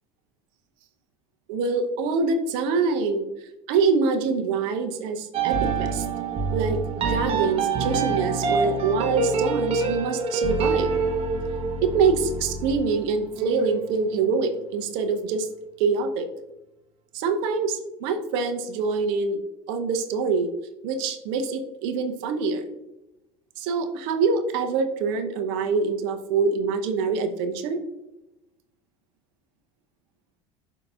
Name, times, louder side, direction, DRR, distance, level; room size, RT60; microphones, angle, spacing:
voice 1, 1.5-3.3 3.7-6.1 6.5-6.8 7.1-10.9 11.8-15.5 15.8-16.3 17.1-19.4 19.7-20.5 20.8-22.6 23.6-27.8, right 4 dB, 60° right, 7 dB, 0.7 m, -25 dB
sound 1, 5.3-14.5, right 4 dB, 35° right, 1.0 m, -26 dB
11.5 x 4.0 x 2.4 m, 0.93 s
figure-of-eight pair, 70°, 16 cm